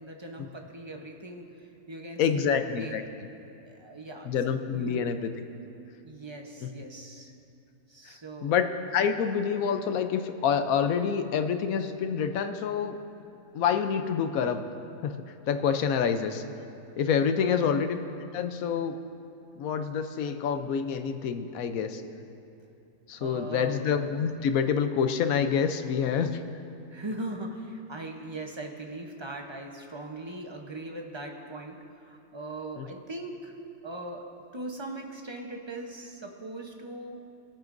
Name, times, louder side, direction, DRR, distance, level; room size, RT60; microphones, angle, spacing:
voice 1, 0.0-3.0 3.6-5.1 6.0-7.3 7.9-8.6 17.4-17.8 23.2-23.9 26.9-31.8 32.0-33.5 33.8-34.2 34.5-37.2, right 2 dB, 25° right, 2 dB, 0.7 m, -40 dB
voice 2, 2.2-3.0 4.2-5.3 6.6-6.7 8.4-13.0 13.5-14.7 15.0-15.1 15.5-16.4 17.0-18.0 18.3-18.9 19.6-22.0 23.1-26.4 32.8-32.9, left 7 dB, 70° left, 8 dB, 1.1 m, -27 dB
23.0 x 8.8 x 2.6 m, 2.6 s
omnidirectional pair, 1.6 m